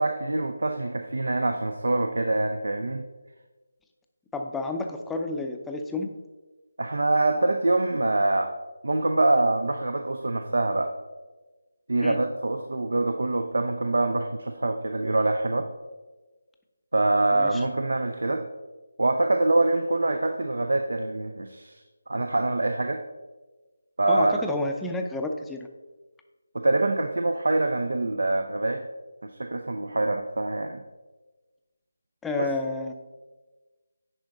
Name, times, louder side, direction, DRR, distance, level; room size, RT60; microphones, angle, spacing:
voice 1, 0.0-3.0 6.8-8.5 8.8-10.9 11.9-15.7 16.9-18.4 19.0-21.8 22.1-23.0 24.0-24.4 26.5-28.8 29.2-30.8 32.4-32.5, right 2 dB, 70° right, 6 dB, 0.6 m, -25 dB
voice 2, 4.3-6.1 12.0-12.2 17.3-17.6 24.1-25.7 32.2-32.9, left 2 dB, 5° left, 3 dB, 0.5 m, -30 dB
10.0 x 5.0 x 3.9 m, 1.2 s
figure-of-eight pair, 160°, 0 cm